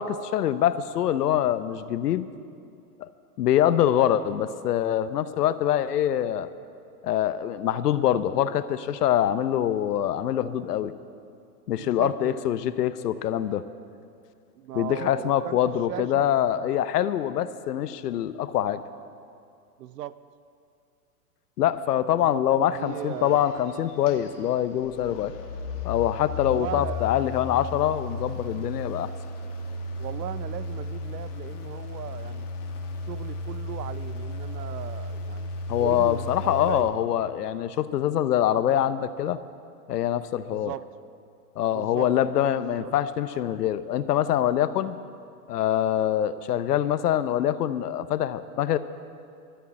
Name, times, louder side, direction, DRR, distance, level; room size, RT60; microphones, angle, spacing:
voice 1, 0.0-2.3 3.0-3.1 3.4-6.5 7.0-10.9 11.7-13.6 14.7-18.8 21.6-25.3 25.8-29.1 35.7-39.4 39.9-40.7 41.6-45.0 45.5-48.8, left 11 dB, 75° left, 14 dB, 0.8 m, -24 dB
voice 2, 11.8-12.5 14.6-16.3 19.8-20.2 22.2-23.5 26.5-27.1 30.0-32.5 33.1-35.5 35.8-36.9 40.5-40.8 41.7-42.1 42.5-43.0, right 12 dB, 85° right, 16 dB, 0.7 m, -38 dB
sound 1, 22.8-36.8, left 2 dB, 50° left, 1.7 m, -35 dB
12.5 x 10.0 x 8.5 m, 2.5 s
supercardioid pair, 170°, 47 cm